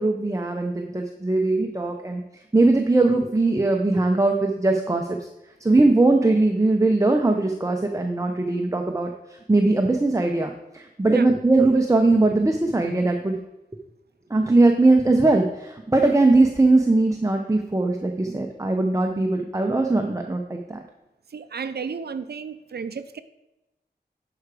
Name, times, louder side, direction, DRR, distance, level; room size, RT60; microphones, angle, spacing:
voice 1, 0.0-5.3 5.6-13.4 14.3-20.8, right 2 dB, 20° right, 3 dB, 0.7 m, -20 dB
voice 2, 21.3-23.2, right 6 dB, 70° right, 10 dB, 0.5 m, -33 dB
11.5 x 4.9 x 4.8 m, 0.94 s
wide cardioid pair, 75°, 17 cm